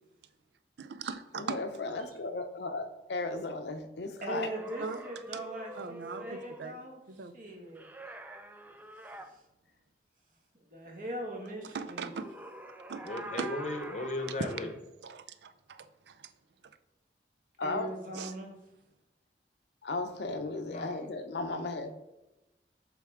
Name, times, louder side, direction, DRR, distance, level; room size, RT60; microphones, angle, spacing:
voice 1, 0.8-1.6 4.8-5.0 5.8-6.2 6.6-6.8 7.1-7.3 11.7-12.3 12.9-13.5 15.0-16.2 18.1-18.3, right 5 dB, 75° right, 11 dB, 0.4 m, -40 dB
voice 2, 1.4-4.5 17.6-17.9 19.8-21.9, left 3 dB, 75° left, 7 dB, 0.6 m, -35 dB
voice 3, 4.2-7.8 10.6-12.1 17.6-18.6 21.5-21.9, right 1 dB, 50° right, 0 dB, 1.3 m, -41 dB
sound 1, 4.3-6.7 7.7-9.3 11.8-14.8, right 1 dB, 10° right, 0.3 m, -46 dB
voice 4, 13.0-14.7 20.7-21.0, left 1 dB, 40° left, 5 dB, 0.8 m, -36 dB
7.7 x 3.4 x 3.6 m, 0.98 s
head